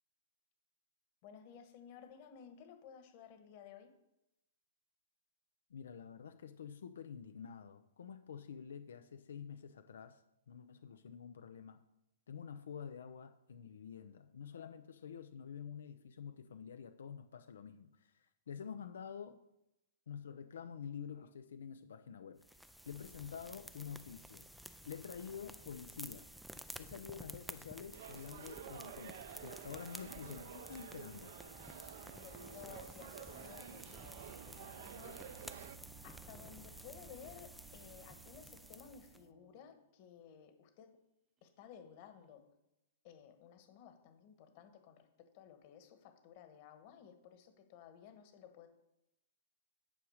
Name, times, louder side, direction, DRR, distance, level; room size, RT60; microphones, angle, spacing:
voice 1, 1.2-3.9 32.1-35.7 36.0-41.0 41.4-42.4 43.0-48.7, left 8 dB, 40° left, 8 dB, 1.4 m, -56 dB
voice 2, 5.7-11.8 12.3-19.4 20.1-24.5 24.8-26.3 26.8-31.3, left 7 dB, 85° left, 9 dB, 0.6 m, -48 dB
sound 1, 22.4-39.2, equal, ahead, 0.4 m, -53 dB
sound 2, 27.9-35.8, right 9 dB, 55° right, 0.7 m, -51 dB
sound 3, 33.8-39.7 42.2-42.3, right 11 dB, 20° right, 0.8 m, -59 dB
10.0 x 4.9 x 6.4 m, 0.88 s
hypercardioid pair, 160°, 0 cm